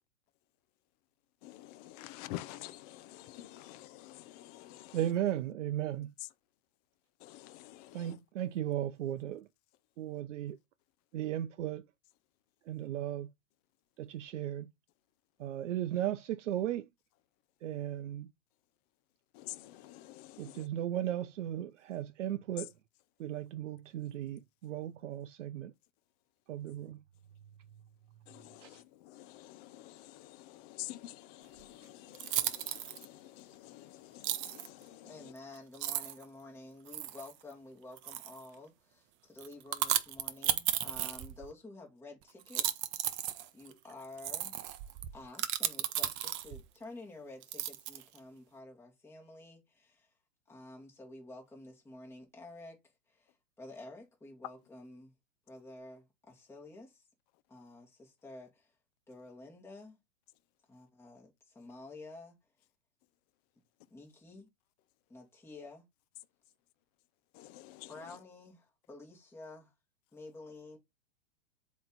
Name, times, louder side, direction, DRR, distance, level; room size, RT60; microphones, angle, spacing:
voice 1, 1.4-5.0 7.2-8.2 19.3-20.7 28.3-35.3 67.3-67.9, left 15 dB, 30° left, 0.5 m, -49 dB
voice 2, 4.9-6.1 7.9-9.5 10.0-10.6 11.1-11.8 12.7-13.3 14.0-14.7 15.4-16.9 17.6-18.3 20.4-22.7 23.2-25.7 26.5-27.0 28.6-28.8, right 12 dB, 65° right, 0.7 m, -36 dB
sound 1, 31.6-31.7 32.1-33.0 34.2-34.7 35.4-35.5 35.7-36.2 36.9-37.3 38.0-38.5 39.4-41.5 42.4-46.7 47.4-48.2, right 12 dB, 30° right, 0.7 m, -34 dB
voice 3, 35.0-43.2 43.5-44.6 45.1-50.1 50.5-55.1 55.5-57.1 57.5-58.7 59.1-60.0 60.7-62.4 63.9-64.5 65.1-65.8 67.9-69.7 70.1-70.8, left 2 dB, 5° left, 2.2 m, -51 dB
7.6 x 3.2 x 4.0 m
hypercardioid pair, 120°, 39 cm